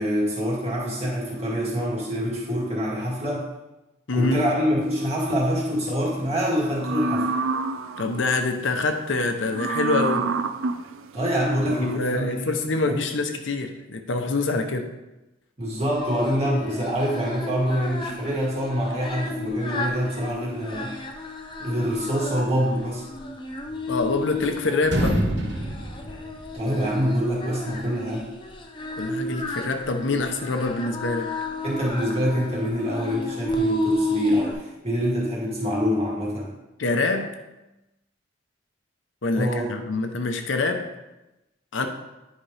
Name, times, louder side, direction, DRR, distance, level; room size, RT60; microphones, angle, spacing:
voice 1, 0.0-3.4 4.1-7.3 11.1-12.4 12.8-13.0 15.6-20.9 21.6-23.0 26.5-28.3 31.6-36.5 39.3-39.7, equal, 30° right, -4 dB, 2.1 m, -25 dB
voice 2, 4.1-4.5 8.0-10.3 11.7-14.9 23.9-25.2 29.0-31.3 36.8-37.3 39.2-40.9 41.7-41.9, left 3 dB, 75° left, 6 dB, 0.8 m, -25 dB
sound 1, 4.8-5.6 6.7-8.2 9.5-12.0, right 4 dB, 90° right, 0.4 m, -29 dB
Singing, 15.8-34.5, left 1 dB, 25° left, 0.6 m, -33 dB
sound 2, 23.7-24.5 24.8-26.9, right 1 dB, 60° right, 1.1 m, -27 dB
10.0 x 5.1 x 3.3 m, 0.99 s
head